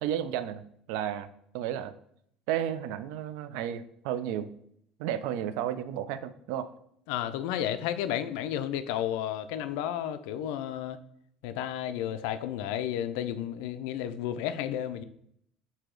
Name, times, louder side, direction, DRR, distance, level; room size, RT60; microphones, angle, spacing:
voice 1, 0.0-1.9 2.5-4.5 5.0-6.7, right 10 dB, 80° right, 13 dB, 0.3 m, -33 dB
voice 2, 7.1-11.0 11.4-15.0, left 10 dB, 85° left, 11 dB, 0.3 m, -32 dB
4.8 x 2.7 x 3.8 m, 0.70 s
cardioid pair, 165°, 0 cm